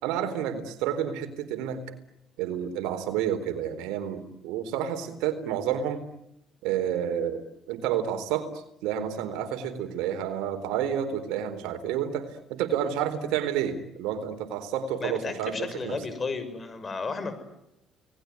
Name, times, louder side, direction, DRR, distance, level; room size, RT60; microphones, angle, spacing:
voice 1, 0.0-1.8 2.4-6.0 6.6-7.4 7.7-8.5 8.8-16.0, right 9 dB, 90° right, 8 dB, 4.1 m, -30 dB
voice 2, 15.0-17.3, left 4 dB, 30° left, 12 dB, 6.6 m, -33 dB
30.0 x 20.0 x 9.7 m, 0.84 s
cardioid pair, 95°, 0 cm